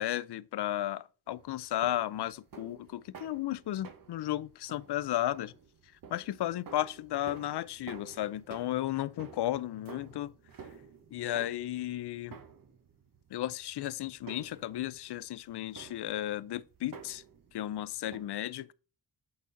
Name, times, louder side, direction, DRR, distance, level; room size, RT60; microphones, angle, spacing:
voice 1, 0.0-5.5 6.1-10.3 10.6-10.7 11.1-12.4 13.3-17.2 17.5-18.7, left 13 dB, 65° left, 0.6 m, -34 dB
sound 1, 1.3-18.2, right 6 dB, 50° right, 1.1 m, -52 dB
8.6 x 4.1 x 3.9 m
cardioid pair, 95°, 42 cm